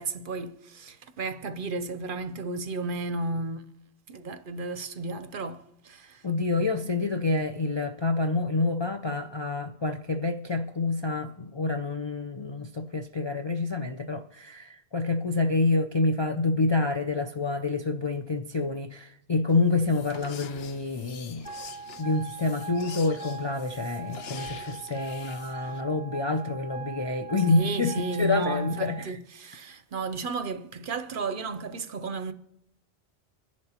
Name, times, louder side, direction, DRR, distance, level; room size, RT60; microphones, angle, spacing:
voice 1, 0.0-3.6 4.1-6.3 27.4-32.3, right 3 dB, 55° right, 0.8 m, -33 dB
voice 2, 6.2-21.5 22.0-27.9 28.2-29.2, left 3 dB, 40° left, 0.4 m, -28 dB
sound 1, 19.5-25.8, left 7 dB, 65° left, 0.9 m, -46 dB
sound 2, 21.4-29.0, right 4 dB, 10° right, 0.5 m, -41 dB
26.0 x 10.5 x 2.9 m
omnidirectional pair, 1.2 m